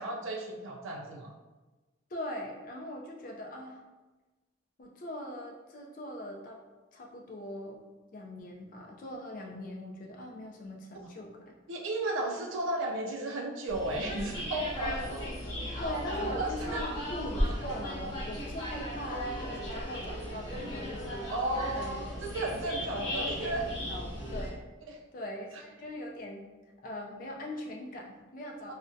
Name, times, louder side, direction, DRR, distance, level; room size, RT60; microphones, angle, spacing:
voice 1, 0.0-1.3 10.9-11.1 11.7-15.2 16.2-16.8 21.3-23.6 24.9-25.0 28.7-28.8, right 2 dB, 80° right, 1 dB, 0.3 m, -34 dB
voice 2, 2.1-3.8 4.8-6.6 6.9-7.8 8.1-11.5 15.8-21.3 21.7-22.0 22.7-22.8 23.2-23.6 23.9-24.7 25.1-26.4 26.8-28.7, left 1 dB, 45° left, 0 dB, 0.4 m, -41 dB
sound 1, 13.7-24.5, equal, 20° left, 0.7 m, -36 dB
3.6 x 2.1 x 2.6 m, 1.2 s
head